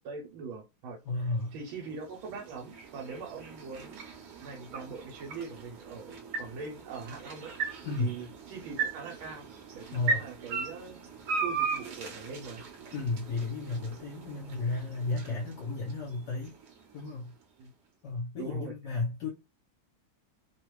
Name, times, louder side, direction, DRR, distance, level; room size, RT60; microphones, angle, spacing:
voice 1, 0.0-9.5 9.7-11.0 11.4-12.6 15.2-15.4 17.6-17.7 18.4-18.7, right 4 dB, 80° right, 1.5 m, -42 dB
voice 2, 1.0-1.5 7.8-8.1 9.9-10.3 12.9-16.6 16.9-17.3 18.0-19.3, left 3 dB, 65° left, 1.3 m, -33 dB
sound 1, 1.2-17.4, right 4 dB, 60° right, 1.1 m, -38 dB
3.3 x 2.4 x 3.0 m
omnidirectional pair, 2.3 m